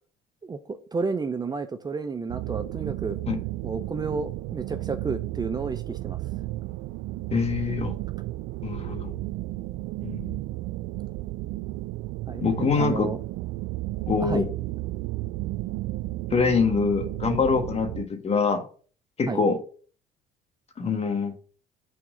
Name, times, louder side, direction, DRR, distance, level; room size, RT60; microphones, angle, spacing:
voice 1, 0.4-3.2 3.6-6.2 12.3-13.2 14.2-14.4 19.3-19.4, right 4 dB, 20° right, 10 dB, 0.6 m, -31 dB
sound 1, 2.3-18.1, right 17 dB, 75° right, 0.4 m, -33 dB
voice 2, 7.3-7.9 8.6-9.1 10.0-10.3 12.3-13.1 14.1-14.5 16.3-18.6 19.2-19.6 20.8-21.3, left 5 dB, 35° left, 6 dB, 1.5 m, -24 dB
6.4 x 4.5 x 5.0 m, 0.42 s
cardioid pair, 95°, 18 cm